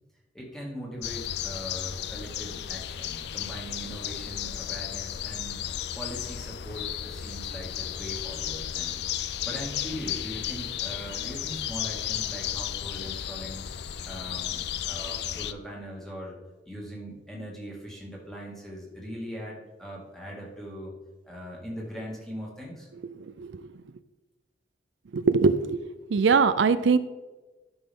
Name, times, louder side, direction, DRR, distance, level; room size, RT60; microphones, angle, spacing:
voice 1, 0.3-5.6 5.9-9.0 9.4-13.7 14.0-16.4 16.7-20.9 21.2-22.9, equal, ahead, -4 dB, 2.2 m, -40 dB
sound 1, 1.0-15.5, left 10 dB, 65° left, 0.4 m, -34 dB
voice 2, 23.2-23.7 25.1-25.8 26.1-27.0, right 5 dB, 80° right, 12 dB, 0.4 m, -22 dB
12.0 x 6.3 x 3.6 m, 1.2 s
head